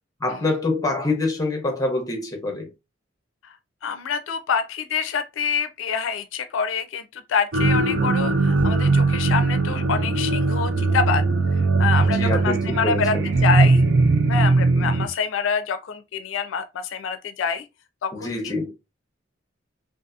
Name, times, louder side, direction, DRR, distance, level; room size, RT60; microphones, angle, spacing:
voice 1, 0.2-2.7 12.0-13.3 18.1-18.7, left 2 dB, 20° left, 0.7 m, -25 dB
voice 2, 3.8-11.2 11.5-13.1 13.4-13.8 14.3-17.7 18.0-18.7, left 6 dB, 90° left, 0.4 m, -26 dB
sound 1, 7.5-15.1, right 3 dB, 65° right, 0.5 m, -20 dB
2.7 x 2.4 x 2.3 m
head